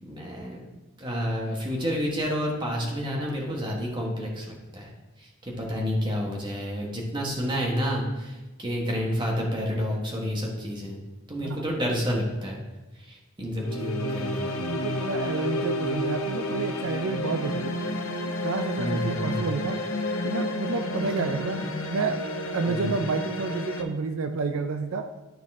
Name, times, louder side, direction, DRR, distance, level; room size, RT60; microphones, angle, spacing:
voice 1, 0.0-0.6 1.0-4.9 5.2-11.0 11.3-12.6 13.0-14.5 18.8-19.4 22.7-23.0, equal, 20° right, -1 dB, 1.4 m, -29 dB
sound 1, 13.6-23.8, left 1 dB, 75° left, 0.9 m, -30 dB
voice 2, 14.4-17.8 18.4-19.8 20.2-21.6 21.9-22.2 22.5-25.1, right 4 dB, 70° right, 7 dB, 0.5 m, -30 dB
12.0 x 4.1 x 3.6 m, 1.1 s
head